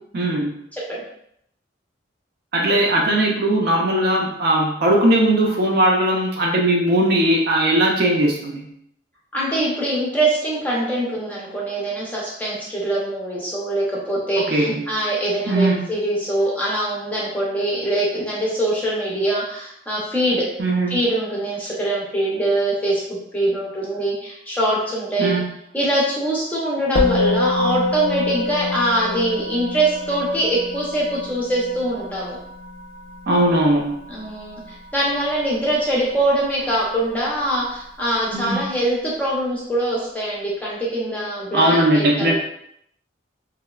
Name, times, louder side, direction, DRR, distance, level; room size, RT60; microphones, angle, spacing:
voice 1, 0.1-0.6 2.5-8.7 14.4-14.9 15.5-15.8 20.6-21.0 25.2-25.5 33.3-33.9 38.3-38.6 41.5-42.3, right 1 dB, 55° right, -1 dB, 0.4 m, -19 dB
voice 2, 0.7-1.0 9.3-20.5 20.9-25.4 25.7-32.4 34.1-42.3, right 1 dB, 10° left, -6 dB, 0.5 m, -23 dB
Musical instrument, 27.0-36.5, left 3 dB, 80° left, 0.4 m, -26 dB
2.9 x 2.0 x 2.2 m, 0.72 s
head